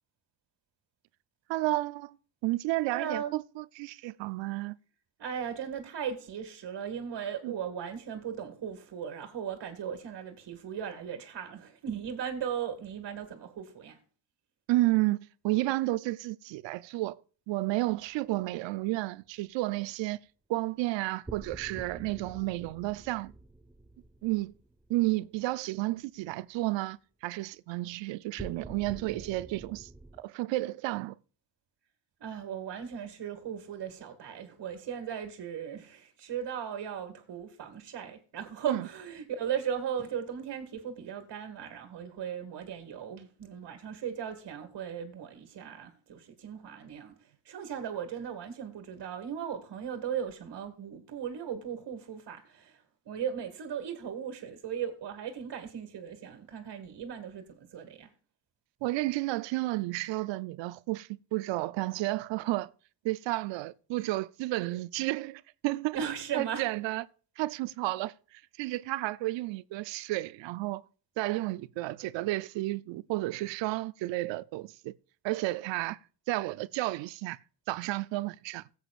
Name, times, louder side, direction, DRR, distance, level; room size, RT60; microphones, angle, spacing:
voice 1, 1.5-2.2 2.4-4.8 7.4-7.5 14.7-15.2 15.4-17.2 17.5-20.2 20.5-23.3 24.2-24.5 24.9-29.9 30.2-31.1 38.7-38.9 58.8-62.7 63.0-66.0 66.3-67.0 67.4-70.8 71.2-74.9 75.2-76.0 76.3-77.4 77.7-78.6, right 19 dB, 90° right, 0.6 m, -32 dB
voice 2, 2.9-3.4 5.2-14.0 32.2-58.1 65.9-66.7, right 8 dB, 60° right, 2.0 m, -37 dB
sound 1, 18.0-18.4 21.3-25.6 28.4-30.2, right 2 dB, 10° right, 0.8 m, -48 dB
16.5 x 8.0 x 2.4 m
cardioid pair, 70°, 43 cm